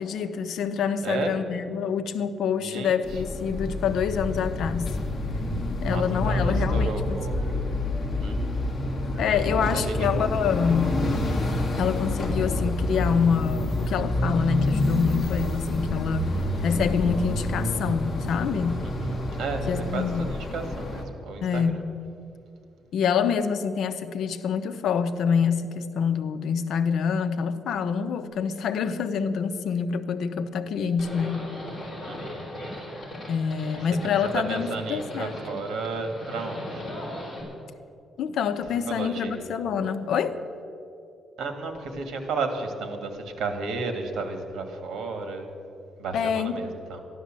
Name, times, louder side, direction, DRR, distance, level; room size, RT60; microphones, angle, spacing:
voice 1, 0.0-5.0 5.8-7.4 9.2-11.0 11.8-18.8 19.7-20.3 21.4-21.9 22.9-31.4 33.3-35.6 38.2-40.4 46.1-46.7, left 6 dB, 70° left, 10 dB, 0.8 m, -26 dB
voice 2, 1.0-1.4 2.6-3.2 5.9-7.7 8.2-8.7 9.3-10.3 18.8-19.6 19.9-21.8 32.0-32.4 34.3-36.8 38.9-39.5 41.4-45.5 46.0-47.0, right 3 dB, 75° right, 6 dB, 2.1 m, -33 dB
sound 1, 3.0-21.0, left 1 dB, 30° left, 1.9 m, -28 dB
Livestock farm animals working animals, 31.0-37.4, left 1 dB, 15° left, 4.4 m, -38 dB
14.0 x 11.5 x 7.6 m, 2.6 s
cardioid pair, 155°, 0 cm